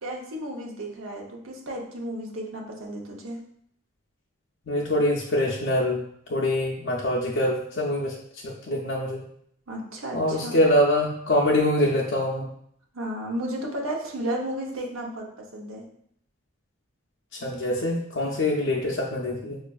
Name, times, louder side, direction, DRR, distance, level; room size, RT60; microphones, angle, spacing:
voice 1, 0.0-3.4 9.7-10.6 12.9-15.8, right 1 dB, 75° right, 0 dB, 0.7 m, -33 dB
voice 2, 4.7-8.1 8.4-9.2 10.1-12.5 17.3-19.6, left 1 dB, 55° left, -2 dB, 0.5 m, -24 dB
5.1 x 2.4 x 2.3 m, 0.67 s
head